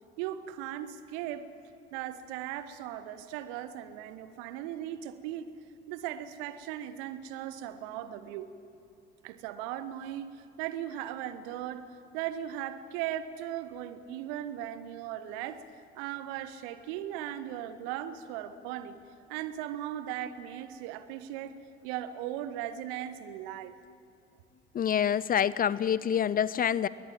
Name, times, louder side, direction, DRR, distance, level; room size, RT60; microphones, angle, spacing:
voice 1, 0.2-1.5 1.9-5.4 5.9-8.5 9.2-11.9 12.1-15.6 15.9-19.0 19.3-23.7, right 11 dB, 60° right, 13 dB, 1.2 m, -38 dB
voice 2, 24.7-26.9, left 9 dB, 30° left, 19 dB, 0.6 m, -26 dB
21.0 x 20.5 x 8.9 m, 2.5 s
figure-of-eight pair, 55°, 30 cm